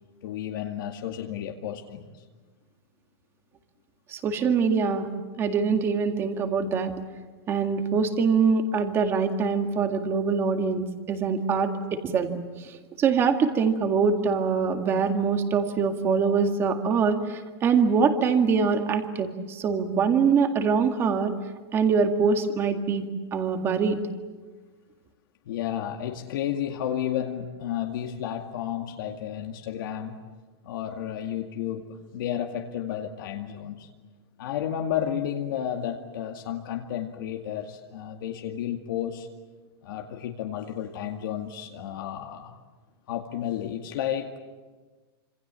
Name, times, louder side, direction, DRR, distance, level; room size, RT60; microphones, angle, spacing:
voice 1, 0.2-2.1 25.5-30.2 30.6-33.9 34.4-39.3 39.8-42.6 43.1-44.4, left 10 dB, 60° left, 3 dB, 2.2 m, -32 dB
voice 2, 4.1-5.1 5.4-6.9 7.5-12.3 12.6-21.3 21.7-24.0, right 5 dB, 20° right, 6 dB, 1.9 m, -24 dB
27.0 x 26.5 x 7.6 m, 1.3 s
supercardioid pair, 170°, 13 cm